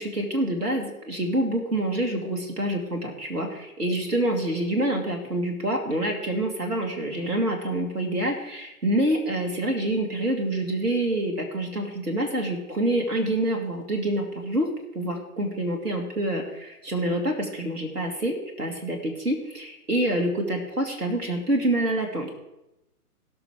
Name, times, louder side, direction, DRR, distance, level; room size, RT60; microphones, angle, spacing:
voice 1, 0.0-14.7 14.9-22.4, right 1 dB, 80° right, 2 dB, 2.2 m, -27 dB
18.0 x 6.0 x 5.0 m, 0.92 s
figure-of-eight pair, 130°, 46 cm